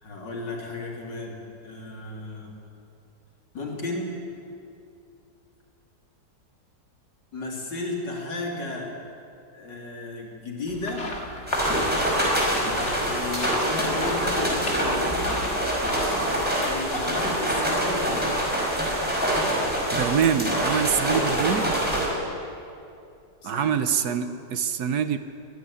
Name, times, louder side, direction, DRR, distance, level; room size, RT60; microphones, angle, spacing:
voice 1, 0.0-2.5 3.5-4.1 7.3-8.9 9.5-11.1 12.5-15.4 16.6-18.5 23.4-24.2, left 2 dB, 75° left, -1 dB, 3.9 m, -34 dB
sound 1, 10.7-16.0, left 1 dB, 40° left, 2.6 m, -34 dB
sound 2, 11.5-22.1, equal, 5° right, 5.1 m, -25 dB
voice 2, 19.9-21.8 23.4-25.2, right 8 dB, 65° right, 11 dB, 1.3 m, -25 dB
22.5 x 12.0 x 9.9 m, 2.6 s
omnidirectional pair, 1.9 m